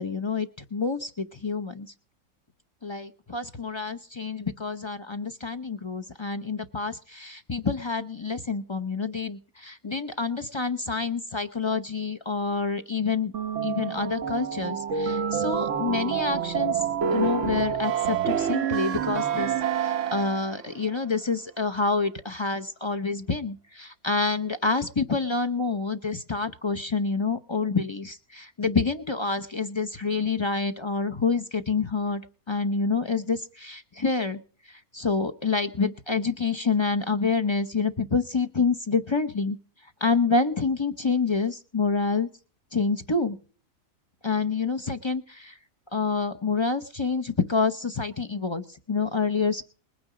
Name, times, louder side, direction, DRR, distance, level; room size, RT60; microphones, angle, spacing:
voice 1, 0.0-1.9 2.8-13.3 13.6-16.8 17.1-32.2 32.5-34.4 34.9-39.6 40.0-42.3 42.7-43.4 44.2-45.5 45.9-49.6, left 4 dB, 30° left, 8 dB, 0.5 m, -27 dB
sound 1, 13.3-20.6, right 7 dB, 65° right, 1.2 m, -27 dB
20.0 x 9.5 x 4.9 m, 0.41 s
omnidirectional pair, 1.5 m